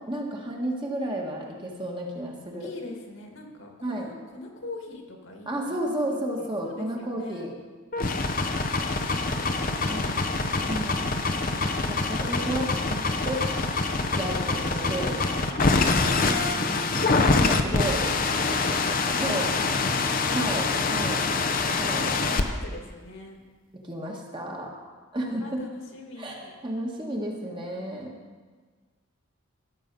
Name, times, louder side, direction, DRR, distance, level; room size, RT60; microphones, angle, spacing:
voice 1, 0.1-2.7 3.8-4.1 5.4-7.5 9.9-10.0 10.7-11.1 11.5-13.0 13.2-13.4 14.1-15.6 16.0-16.1 16.9-18.0 19.2-19.5 20.2-21.2 21.7-22.1 23.8-24.7 25.1-25.6 26.2-28.1, right 1 dB, 25° right, -1 dB, 1.5 m, -32 dB
voice 2, 2.6-7.4 8.7-10.8 12.2-12.8 17.3-18.1 18.4-21.3 22.3-23.4 25.4-26.5, left 2 dB, 70° left, 1 dB, 2.1 m, -42 dB
sound 1, 7.9-22.4, left 3 dB, 40° left, 0.7 m, -25 dB
15.0 x 7.4 x 5.3 m, 1.5 s
head